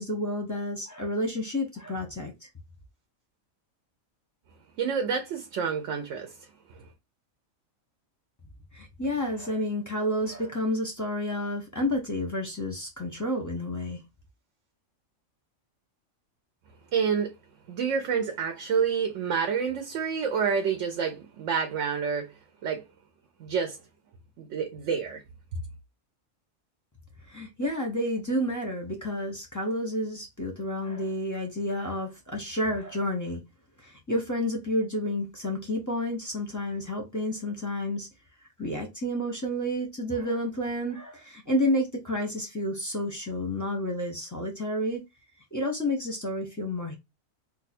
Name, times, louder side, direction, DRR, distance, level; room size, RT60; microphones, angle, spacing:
voice 1, 0.0-2.5 8.7-14.0 27.3-33.4 33.8-38.1 38.6-45.0 45.5-47.0, left 1 dB, 20° left, 0.6 m, -30 dB
voice 2, 4.8-6.3 16.9-17.3 17.7-22.3 22.6-22.8 23.4-23.8 24.4-25.2, right 6 dB, 65° right, 0.9 m, -28 dB
2.7 x 2.3 x 4.0 m
omnidirectional pair, 1.4 m